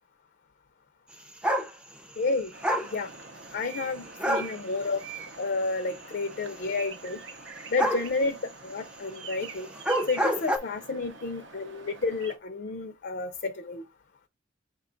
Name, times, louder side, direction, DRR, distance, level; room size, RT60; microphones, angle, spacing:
sound 1, 1.4-1.7 2.6-2.9 4.2-4.5 7.8-8.1 9.7-10.6, equal, 5° right, 0.4 m, -26 dB
voice 1, 2.2-2.5 2.9-3.1 3.5-5.0 5.4-7.2 7.7-8.4 8.6-9.7 10.1-13.9, left 3 dB, 55° left, 0.5 m, -30 dB
sound 2, 2.5-12.4, right 5 dB, 80° right, 0.6 m, -45 dB
5.5 x 2.2 x 3.8 m
head